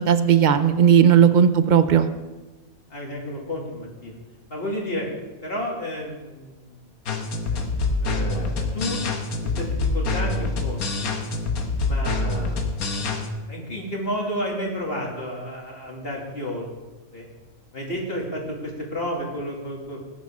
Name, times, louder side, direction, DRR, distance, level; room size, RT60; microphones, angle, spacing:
voice 1, 0.0-2.1, right 8 dB, 50° right, 11 dB, 0.6 m, -16 dB
voice 2, 2.9-4.1 4.5-5.1 5.4-6.8 7.7-9.0 9.4-11.2 11.8-12.6 13.5-16.7 17.1-17.3 17.7-20.0, equal, 40° left, -2 dB, 2.7 m, -31 dB
sound 1, 7.1-13.3, left 3 dB, 90° left, 1.7 m, -26 dB
19.0 x 10.5 x 3.6 m, 1.2 s
omnidirectional pair, 1.5 m